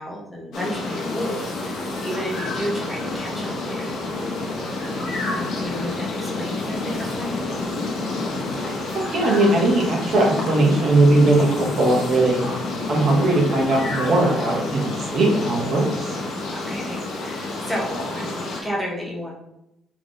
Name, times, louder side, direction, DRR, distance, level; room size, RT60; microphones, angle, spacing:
voice 1, 0.0-4.0 5.3-7.5 16.5-19.3, equal, 5° left, -3 dB, 0.7 m, -32 dB
sound 1, 0.5-18.6, left 2 dB, 55° left, 1.1 m, -29 dB
voice 2, 8.9-12.4 12.9-16.2, right 2 dB, 45° right, -1 dB, 1.1 m, -19 dB
3.7 x 3.1 x 3.8 m, 0.86 s
cardioid pair, 160°, 0 cm